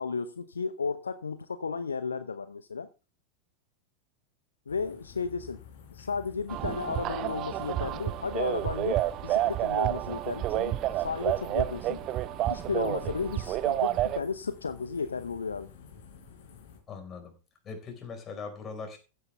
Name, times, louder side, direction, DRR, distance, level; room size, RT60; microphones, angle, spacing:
voice 1, 0.0-2.9 4.7-5.6 5.9-12.0 12.5-15.7, left 5 dB, 75° left, 0.7 m, -34 dB
sound 1, 4.7-16.8, left 7 dB, 55° left, 4.3 m, -51 dB
sound 2, 6.5-14.2, right 14 dB, 35° right, 0.6 m, -30 dB
voice 2, 16.9-17.3 17.6-19.0, left 5 dB, 25° left, 4.8 m, -40 dB
15.0 x 9.3 x 3.4 m
figure-of-eight pair, 90°, 0 cm